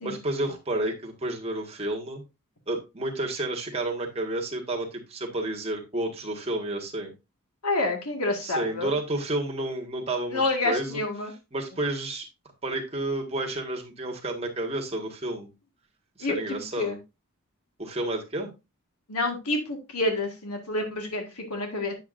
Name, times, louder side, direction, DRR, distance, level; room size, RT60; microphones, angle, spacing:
voice 1, 0.0-2.2 2.7-7.1 8.4-12.3 12.6-15.5 16.2-17.0 17.8-18.5, right 1 dB, 25° right, 1 dB, 1.7 m, -31 dB
voice 2, 7.6-8.9 10.3-11.3 16.2-17.0 19.1-21.9, left 2 dB, 85° left, 3 dB, 1.8 m, -28 dB
9.2 x 7.7 x 2.6 m, 0.25 s
head